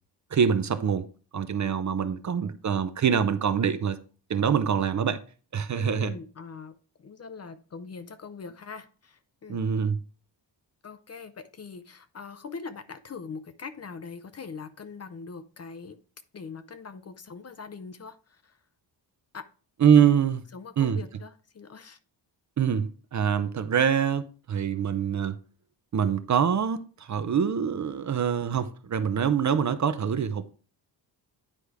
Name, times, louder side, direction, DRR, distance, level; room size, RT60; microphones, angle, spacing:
voice 1, 0.3-1.1 1.3-4.0 4.3-5.2 5.5-6.1 9.5-10.0 19.8-20.4 20.8-21.0 22.6-25.4 25.9-30.5, right 7 dB, 40° right, 0.5 m, -24 dB
voice 2, 5.7-9.6 10.8-16.0 16.3-18.6 19.3-19.5 20.5-22.0, left 5 dB, 35° left, 0.5 m, -42 dB
9.9 x 4.9 x 3.4 m
wide cardioid pair, 160°, 44 cm